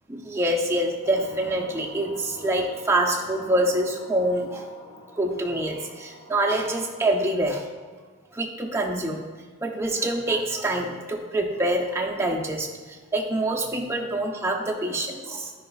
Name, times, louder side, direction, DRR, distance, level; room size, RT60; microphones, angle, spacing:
voice 1, 0.1-4.7 5.2-7.9 8.3-9.2 9.6-15.5, right 1 dB, 15° right, -1 dB, 0.7 m, -26 dB
sound 1, 1.0-7.7, left 1 dB, 80° left, 1.8 m, -45 dB
10.0 x 4.9 x 2.4 m, 1.5 s
head